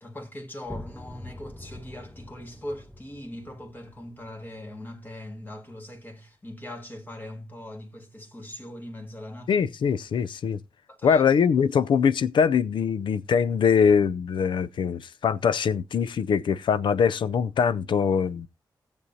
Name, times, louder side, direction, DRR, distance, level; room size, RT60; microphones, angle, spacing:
voice 1, 0.0-9.7 10.9-11.2, left 1 dB, 25° left, 1.8 m, -40 dB
sound 1, 0.6-6.2, left 1 dB, 5° left, 0.6 m, -45 dB
voice 2, 9.5-10.6 11.0-18.5, left 6 dB, 80° left, 0.5 m, -23 dB
17.5 x 7.0 x 2.7 m
wide cardioid pair, 105°, 8 cm